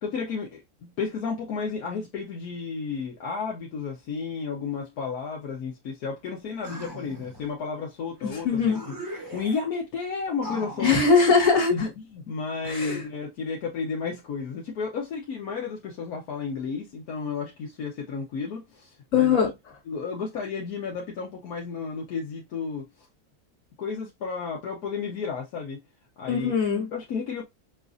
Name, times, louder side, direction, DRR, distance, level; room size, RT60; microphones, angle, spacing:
voice 1, 0.0-8.9 9.3-11.0 11.7-19.4 19.9-22.8 23.8-25.8 26.2-26.5 26.9-27.4, left 5 dB, 80° left, 1.4 m, -32 dB
sound 1, 6.6-7.5 8.2-8.3 8.6-9.7 10.4-11.5, equal, 15° right, 1.0 m, -39 dB
voice 2, 8.2-8.8 10.8-11.9 12.6-13.0 19.1-19.5 26.3-26.9, left 5 dB, 60° left, 1.9 m, -21 dB
6.0 x 2.4 x 2.5 m
omnidirectional pair, 1.5 m